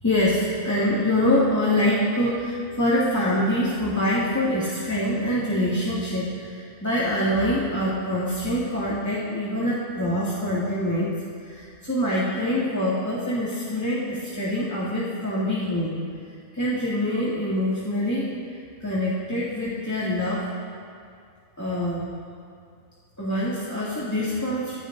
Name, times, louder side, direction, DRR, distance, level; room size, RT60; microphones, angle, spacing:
voice 1, 0.0-11.1 11.4-16.0 16.5-20.5 21.6-22.1 23.2-24.8, left 1 dB, 15° left, -8 dB, 2.1 m, -25 dB
26.0 x 15.5 x 2.6 m, 2.3 s
omnidirectional pair, 1.4 m